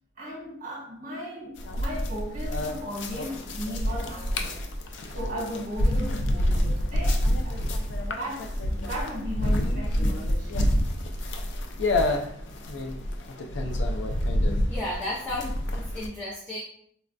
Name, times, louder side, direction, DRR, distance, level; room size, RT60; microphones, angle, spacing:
voice 1, 0.2-4.6 5.1-7.6 8.1-10.6, equal, 50° right, -4 dB, 1.0 m, -36 dB
sound 1, 1.6-16.1, left 1 dB, 75° left, 0.4 m, -27 dB
voice 2, 14.7-16.6, left 1 dB, 10° left, -7 dB, 0.5 m, -33 dB
4.1 x 2.2 x 2.5 m, 0.65 s
head